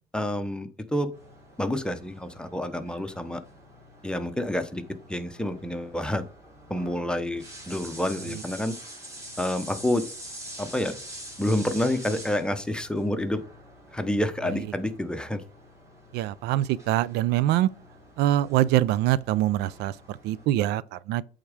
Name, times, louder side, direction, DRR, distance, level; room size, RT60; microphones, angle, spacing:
voice 1, 0.1-1.1 1.6-3.4 4.0-4.8 5.1-6.2 6.7-8.8 9.4-10.1 10.6-10.9 11.4-13.4 13.9-15.4, left 1 dB, 5° left, 0.8 m, -28 dB
sound 1, 1.1-20.5, equal, 15° right, 3.2 m, -46 dB
voice 2, 16.1-17.7 18.2-21.2, right 14 dB, 85° right, 0.4 m, -24 dB
8.5 x 3.7 x 4.8 m
cardioid pair, 110°, 17 cm